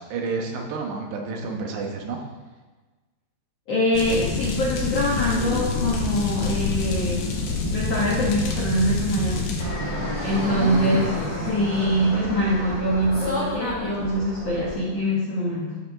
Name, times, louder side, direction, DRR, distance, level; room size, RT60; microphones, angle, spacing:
voice 1, 0.0-2.2 10.3-11.1, right 4 dB, 75° right, 1 dB, 3.3 m, -30 dB
voice 2, 3.7-7.3 7.6-9.5 10.2-15.8, equal, 70° left, -6 dB, 1.4 m, -24 dB
sound 1, 3.9-9.6, left 3 dB, 90° left, 3.9 m, -27 dB
Fixed-wing aircraft airplane, 9.6-14.7, equal, 10° left, 1.3 m, -30 dB
15.0 x 7.2 x 3.7 m, 1.3 s
omnidirectional pair, 5.1 m